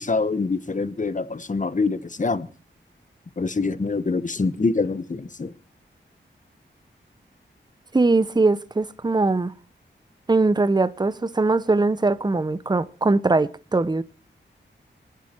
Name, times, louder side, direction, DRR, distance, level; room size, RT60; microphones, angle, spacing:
voice 1, 0.0-2.5 3.4-5.5, left 3 dB, 40° left, 1.1 m, -25 dB
voice 2, 7.9-9.5 10.3-14.0, right 3 dB, 20° right, 0.7 m, -21 dB
23.0 x 9.6 x 4.5 m
wide cardioid pair, 80°, 20 cm